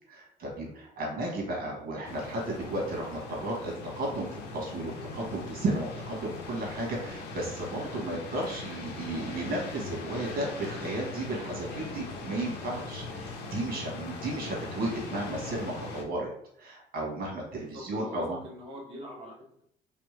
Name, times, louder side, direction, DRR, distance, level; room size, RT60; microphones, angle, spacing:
voice 1, 0.1-16.3 16.6-18.4, right 1 dB, 60° right, -2 dB, 1.6 m, -34 dB
sound 1, 2.0-16.0, left 3 dB, 80° left, 0.9 m, -40 dB
voice 2, 17.6-19.6, equal, 35° right, -5 dB, 1.3 m, -43 dB
3.4 x 3.4 x 3.3 m, 0.68 s
cardioid pair, 110°, 17 cm